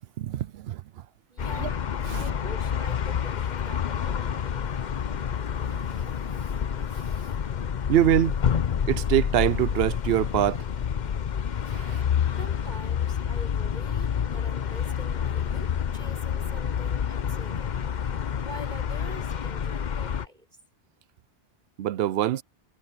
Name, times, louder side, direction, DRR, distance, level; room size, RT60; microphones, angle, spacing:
voice 1, 0.2-1.0 1.6-1.7 2.1-2.2 5.6-6.1 7.9-8.4 8.9-10.6 11.7-12.0 21.8-22.4, right 11 dB, 65° right, 0.7 m, -24 dB
voice 2, 1.3-1.8 2.1-4.6 12.4-18.1 18.4-20.6, equal, 40° right, 6.1 m, -45 dB
sound 1, 1.4-20.3, left 8 dB, 45° left, 0.7 m, -28 dB
omnidirectional pair, 1.2 m